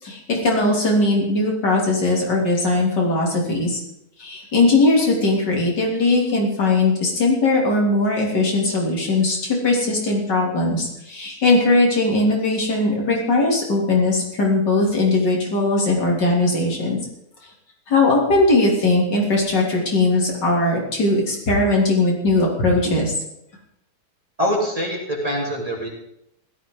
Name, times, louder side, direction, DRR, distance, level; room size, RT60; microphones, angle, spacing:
voice 1, 0.0-3.8 4.2-17.0 17.9-23.1, left 2 dB, 80° left, -1 dB, 3.8 m, -19 dB
voice 2, 24.4-25.9, equal, 20° right, -2 dB, 3.4 m, -24 dB
16.5 x 13.0 x 3.9 m, 0.79 s
omnidirectional pair, 1.8 m